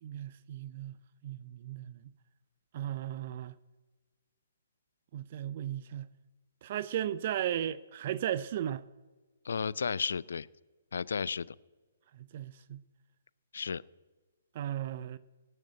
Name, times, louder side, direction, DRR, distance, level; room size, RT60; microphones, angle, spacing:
voice 1, 0.0-1.0 1.2-2.0 2.7-3.5 5.1-6.1 6.6-8.8 12.1-12.8 14.5-15.2, right 11 dB, 50° right, 0.5 m, -36 dB
voice 2, 9.4-10.5 10.9-11.5 13.5-13.8, left 6 dB, 70° left, 0.4 m, -33 dB
18.0 x 6.5 x 8.6 m
hypercardioid pair, 130°, 0 cm